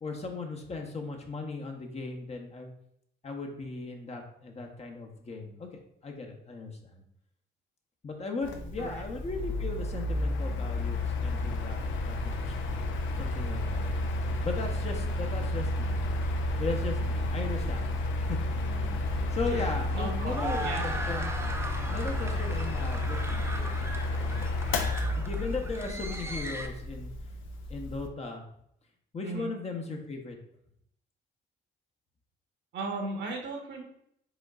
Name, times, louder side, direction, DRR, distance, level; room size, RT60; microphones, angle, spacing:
voice 1, 0.0-2.7 3.2-7.0 8.0-13.9 14.4-16.0 16.6-17.9 18.2-18.4 19.3-21.3 21.9-23.4 25.1-27.1 27.7-28.4 29.1-30.4, left 3 dB, 35° left, 1 dB, 0.8 m, -37 dB
Mechanical fan, 8.4-28.1, left 2 dB, 80° left, 0.6 m, -31 dB
sound 1, 18.7-26.7, right 2 dB, 15° right, 0.5 m, -39 dB
voice 2, 19.9-20.8 29.2-29.5 32.7-33.8, right 3 dB, 65° right, 1 dB, 1.1 m, -36 dB
5.0 x 3.7 x 2.4 m, 0.73 s
cardioid pair, 90°, 20 cm